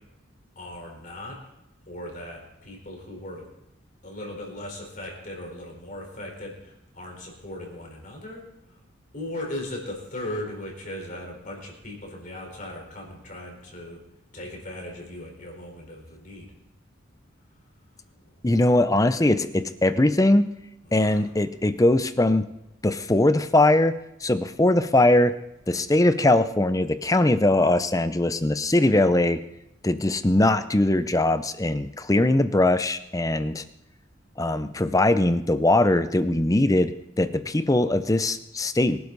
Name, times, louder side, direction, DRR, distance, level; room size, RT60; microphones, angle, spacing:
voice 1, 0.6-1.4 1.9-3.4 4.0-8.4 9.1-14.0 14.3-16.5 20.9-21.2, left 1 dB, 40° left, 0 dB, 4.5 m, -38 dB
voice 2, 18.4-20.5 20.9-22.4 22.8-23.9 24.2-25.3 25.7-29.4 29.8-33.6 34.4-39.0, left 1 dB, 15° left, 11 dB, 0.6 m, -21 dB
24.0 x 12.0 x 4.1 m, 0.86 s
head